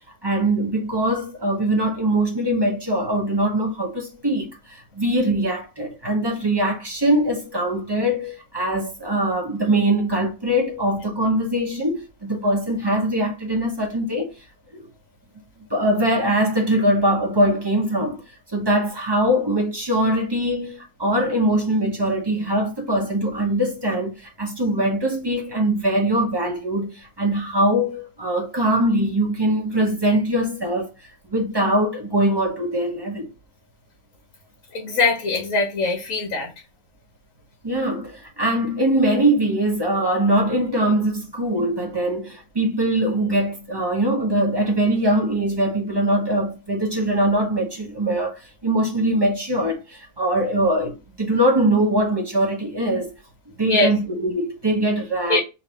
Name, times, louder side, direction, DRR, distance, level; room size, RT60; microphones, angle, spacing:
voice 1, 0.2-14.3 14.7-14.9 15.7-18.2 18.5-30.9 31.3-33.3 37.6-48.3 48.6-53.1 53.6-55.4, right 1 dB, 25° right, 0.6 m, -22 dB
voice 2, 34.7-36.5 53.6-53.9 55.3-55.4, left 3 dB, 70° left, 1.4 m, -21 dB
3.2 x 2.8 x 3.1 m
omnidirectional pair, 1.4 m